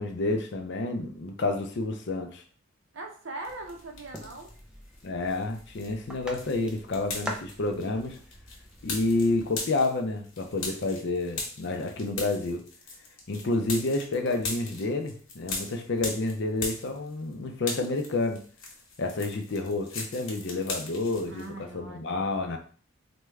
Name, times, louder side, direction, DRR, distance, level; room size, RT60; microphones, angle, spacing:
voice 1, 0.0-2.4 5.0-8.2 8.8-12.6 13.3-18.4 19.0-22.6, left 2 dB, 55° left, 5 dB, 0.5 m, -29 dB
voice 2, 2.9-4.5 21.3-22.3, right 2 dB, 65° right, 2 dB, 0.7 m, -41 dB
sound 1, 3.4-4.6 4.9-17.3 17.6-21.5, left 3 dB, 80° left, 1.0 m, -39 dB
sound 2, 3.4-9.5, equal, 5° right, 0.3 m, -44 dB
3.5 x 2.2 x 3.2 m, 0.42 s
head